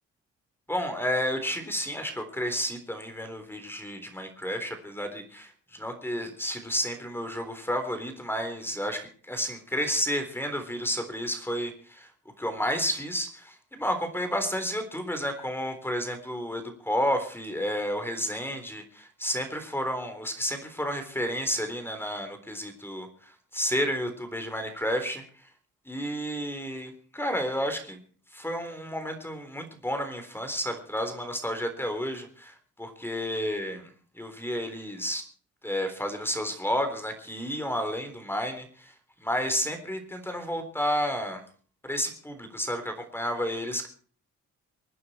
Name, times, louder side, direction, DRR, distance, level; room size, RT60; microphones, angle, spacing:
voice 1, 0.7-12.1 12.4-25.2 25.9-28.0 28.3-35.2 35.6-38.9 39.2-41.4 41.8-43.9, equal, 5° left, 7 dB, 3.8 m, -31 dB
25.0 x 9.5 x 4.5 m, 0.43 s
cardioid pair, 90°, 30 cm